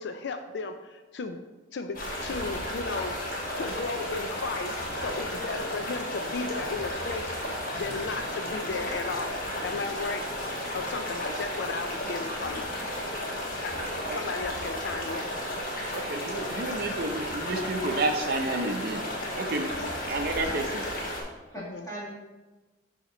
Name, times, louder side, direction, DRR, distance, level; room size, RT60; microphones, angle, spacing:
voice 1, 0.0-1.4 1.7-3.1 3.6-7.3 7.8-9.3 9.6-10.2 10.7-12.7 13.6-13.8 14.1-15.3 21.6-21.9, left 4 dB, 65° left, 7 dB, 0.4 m, -34 dB
sound 1, 1.9-21.2, left 1 dB, 45° left, 1.1 m, -33 dB
voice 2, 7.7-8.0 9.8-10.1 10.7-11.0 13.1-14.1 15.7-16.3 20.4-20.6 21.5-22.1, equal, 15° left, -6 dB, 1.7 m, -44 dB
voice 3, 15.9-19.0 19.4-20.8, right 2 dB, 55° right, 5 dB, 0.6 m, -30 dB
7.0 x 2.8 x 5.0 m, 1.2 s
head